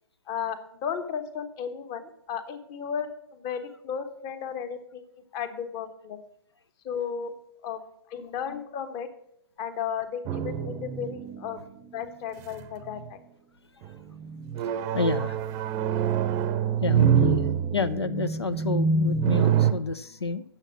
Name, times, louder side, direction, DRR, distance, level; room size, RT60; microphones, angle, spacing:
voice 1, 0.3-5.0 5.3-6.2 6.8-7.3 7.6-7.8 8.1-9.1 9.6-11.6 11.9-13.2, left 7 dB, 30° left, 9 dB, 1.1 m, -34 dB
sound 1, 10.3-12.0 12.6-13.1 13.8-19.7, right 7 dB, 25° right, 0.7 m, -25 dB
voice 2, 14.6-15.4 16.8-17.5 17.7-20.4, left 4 dB, 80° left, 12 dB, 0.5 m, -30 dB
8.8 x 7.0 x 5.9 m, 0.75 s
figure-of-eight pair, 120°, 13 cm